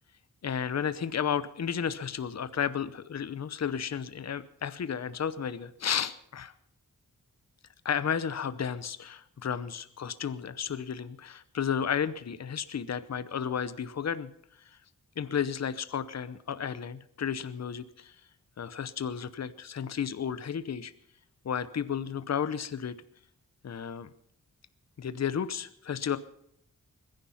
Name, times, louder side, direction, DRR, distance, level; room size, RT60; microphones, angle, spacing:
voice 1, 0.4-6.5 7.8-14.3 14.7-14.8 15.2-18.2 18.6-20.9 21.4-22.9 23.6-24.1 25.0-26.2, left 8 dB, 55° left, 14 dB, 0.8 m, -33 dB
22.0 x 10.5 x 5.7 m, 0.70 s
wide cardioid pair, 140°, 32 cm